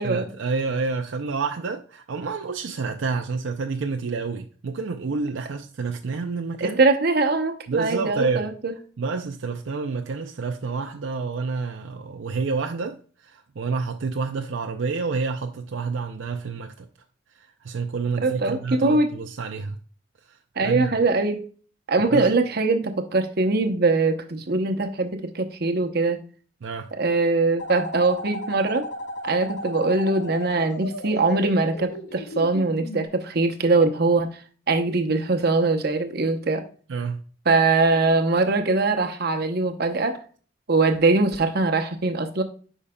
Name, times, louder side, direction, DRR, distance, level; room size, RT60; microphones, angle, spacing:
voice 1, 0.0-6.8 7.7-8.5 9.0-13.0 13.2-16.9 17.4-19.8 20.3-20.9 22.1-22.3 26.6-26.9 36.9-37.2, right 4 dB, 75° right, 0.5 m, -29 dB
voice 2, 6.6-8.8 18.2-19.1 20.6-21.5 21.9-26.2 26.9-28.9 29.2-34.3 34.7-36.6 37.5-40.2 40.7-42.4, right 3 dB, 55° right, 0.8 m, -22 dB
sound 1, 27.6-33.1, left 1 dB, 60° left, 0.7 m, -35 dB
8.5 x 5.5 x 2.2 m
head